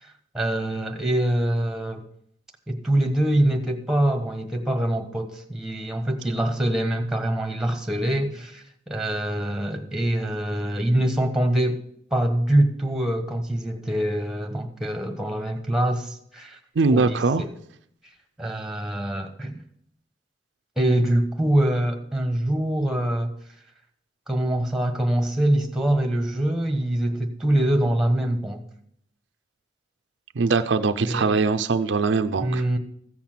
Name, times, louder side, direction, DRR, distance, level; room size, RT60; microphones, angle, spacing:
voice 1, 0.0-2.0 2.7-11.8 12.1-16.6 16.9-17.5 18.4-19.6 20.8-23.3 24.3-28.6 31.0-31.3 32.4-32.8, right 1 dB, 5° right, 5 dB, 1.3 m, -24 dB
voice 2, 16.8-17.4 30.4-32.6, right 4 dB, 70° right, 8 dB, 0.5 m, -21 dB
14.5 x 7.2 x 5.9 m, 0.69 s
head